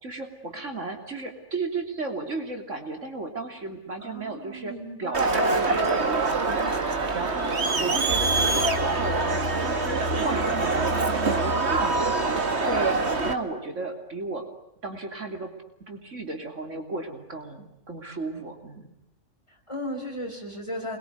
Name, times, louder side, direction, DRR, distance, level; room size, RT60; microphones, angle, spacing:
voice 1, 0.0-4.7 5.0-13.0 13.2-14.5 14.8-15.5 15.8-18.9, right 3 dB, 75° right, 4 dB, 3.4 m, -35 dB
voice 2, 4.0-5.8 19.5-21.0, equal, 25° left, 1 dB, 5.9 m, -36 dB
Crowd, 5.1-13.3, right 3 dB, 60° right, 2.1 m, -24 dB
27.5 x 22.0 x 9.4 m, 0.81 s
omnidirectional pair, 1.3 m